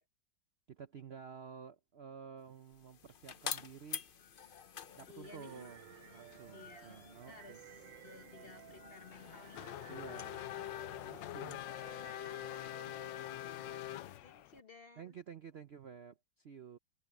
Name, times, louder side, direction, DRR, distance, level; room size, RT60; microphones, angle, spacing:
voice 1, 0.7-4.1 4.9-5.8 6.1-7.6 9.9-10.6 11.0-11.7 15.0-16.8, right 7 dB, 55° right, 0.7 m, -51 dB
sound 1, 2.5-14.2, left 7 dB, 60° left, 0.5 m, -50 dB
voice 2, 5.1-5.7 6.5-7.0 7.3-9.6 13.9-15.1, left 4 dB, 40° left, 0.9 m, -56 dB
sound 2, 5.2-14.0, right 15 dB, 85° right, 1.2 m, -57 dB
Race car auto racing / Accelerating revving vroom, 9.1-14.6, left 14 dB, 85° left, 1.3 m, -44 dB
omnidirectional pair, 1.9 m